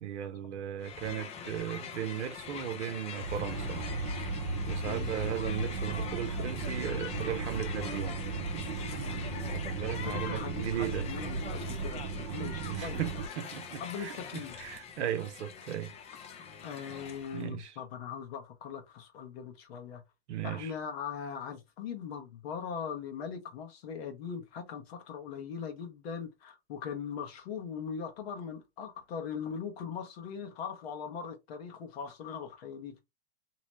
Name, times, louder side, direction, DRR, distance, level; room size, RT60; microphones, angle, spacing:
voice 1, 0.0-3.8 4.7-8.2 9.5-11.1 12.3-15.9 17.3-17.7 20.3-20.7, right 10 dB, 80° right, 0.7 m, -37 dB
Crowd, 0.8-17.5, left 6 dB, 20° left, 0.4 m, -44 dB
sound 1, 3.2-12.0, right 1 dB, 85° left, 0.7 m, -41 dB
sound 2, 3.3-13.3, right 4 dB, 50° right, 0.6 m, -37 dB
voice 2, 4.8-5.4 9.0-9.4 10.0-13.3 13.8-14.6 16.6-20.0 20.4-33.0, left 7 dB, 65° left, 1.0 m, -40 dB
2.9 x 2.1 x 2.9 m
hypercardioid pair, 120°, 34 cm